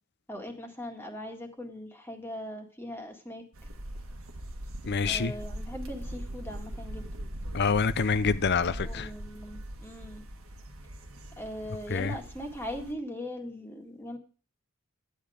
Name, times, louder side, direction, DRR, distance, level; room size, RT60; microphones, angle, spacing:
voice 1, 0.3-3.4 5.0-7.1 8.7-10.2 11.4-14.2, equal, 10° left, 1.9 m, -40 dB
sound 1, 3.5-12.9, right 1 dB, 75° right, 1.7 m, -41 dB
voice 2, 4.9-5.3 7.5-9.1 11.9-12.1, left 5 dB, 50° left, 0.6 m, -26 dB
11.5 x 9.3 x 5.0 m
head